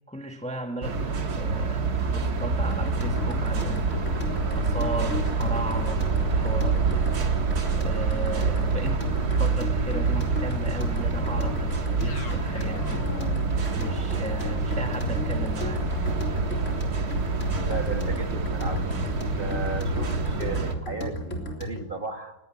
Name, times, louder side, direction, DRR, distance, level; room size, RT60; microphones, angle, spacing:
voice 1, 0.1-7.1 7.7-13.1 13.6-15.9, right 1 dB, 5° left, 1.5 m, -36 dB
sound 1, 0.8-20.8, right 4 dB, 55° right, 2.3 m, -27 dB
sound 2, 2.7-21.9, left 1 dB, 40° left, 4.0 m, -34 dB
sound 3, 11.9-20.1, left 6 dB, 85° left, 2.0 m, -43 dB
voice 2, 17.7-18.9 19.3-22.4, right 3 dB, 30° right, 2.3 m, -35 dB
21.0 x 18.0 x 9.1 m
omnidirectional pair, 2.0 m